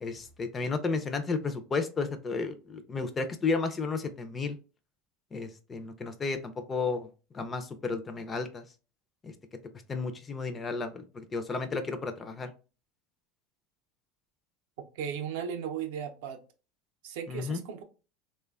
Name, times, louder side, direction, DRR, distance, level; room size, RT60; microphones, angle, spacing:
voice 1, 0.0-4.6 5.3-6.4 6.7-7.1 7.3-8.6 9.2-9.3 9.9-12.5 17.3-17.6, left 4 dB, 25° left, 8 dB, 0.4 m, -32 dB
voice 2, 14.8-16.4 17.0-17.8, right 8 dB, 75° right, 5 dB, 0.5 m, -36 dB
3.1 x 2.1 x 2.3 m, 0.34 s
supercardioid pair, 115°, 0 cm